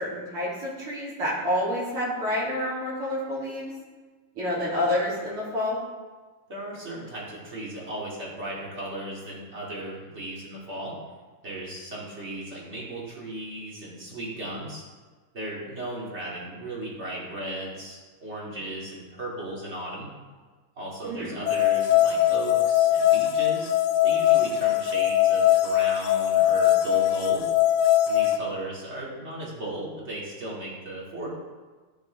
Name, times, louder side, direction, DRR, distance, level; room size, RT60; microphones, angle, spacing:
voice 1, 0.0-3.7 4.4-5.8 21.0-21.3, left 1 dB, 90° right, -8 dB, 3.8 m, -28 dB
voice 2, 6.5-11.0 11.4-14.8 15.3-20.1 20.8-23.7 24.0-27.4 28.0-31.3, right 1 dB, 30° right, -5 dB, 2.5 m, -36 dB
sound 1, 21.5-28.4, left 12 dB, 80° left, 1.5 m, -21 dB
13.5 x 6.7 x 3.4 m, 1.3 s
omnidirectional pair, 2.4 m